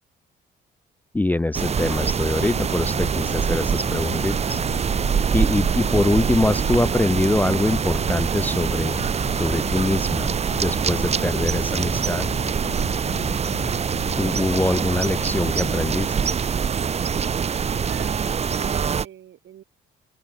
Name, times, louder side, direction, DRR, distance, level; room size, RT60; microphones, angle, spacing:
voice 1, 1.1-4.6 5.3-9.1 9.3-10.3 10.6-12.3 14.2-16.4, left 2 dB, 10° left, 0.4 m, -23 dB
sound 1, 1.5-19.1, right 6 dB, 30° right, 0.6 m, -24 dB
sound 2, 2.3-16.0, left 10 dB, 55° left, 1.1 m, -38 dB
voice 2, 17.8-18.2 18.5-19.6, right 11 dB, 70° right, 5.0 m, -42 dB
open air
cardioid pair, 90°, 20 cm